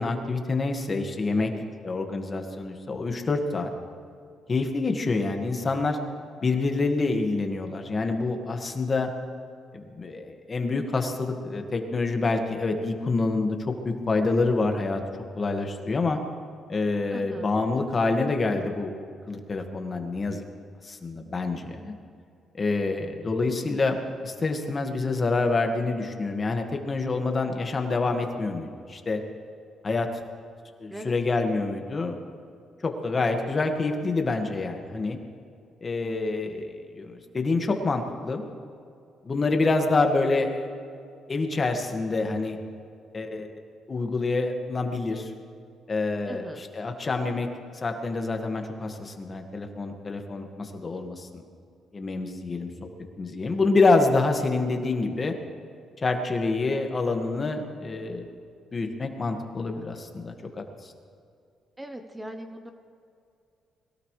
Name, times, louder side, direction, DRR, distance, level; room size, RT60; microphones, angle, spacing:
voice 1, 0.0-1.5 1.8-3.7 4.5-6.0 6.4-9.1 9.7-15.0 15.4-16.2 16.7-18.9 19.3-20.4 20.8-21.9 22.5-29.2 29.8-30.1 30.8-32.2 32.8-35.2 35.8-38.4 39.2-40.7 41.3-42.6 43.1-43.5 43.9-45.3 45.9-47.5 47.8-51.4 51.9-52.7 53.2-55.4 56.0-58.3 58.7-60.9, left 3 dB, 35° left, 4 dB, 1.9 m, -27 dB
voice 2, 17.1-17.5 30.9-31.1 46.3-46.7 61.8-62.7, right 1 dB, 10° right, 6 dB, 1.0 m, -39 dB
22.5 x 17.5 x 3.3 m, 2.5 s
cardioid pair, 90°, 0 cm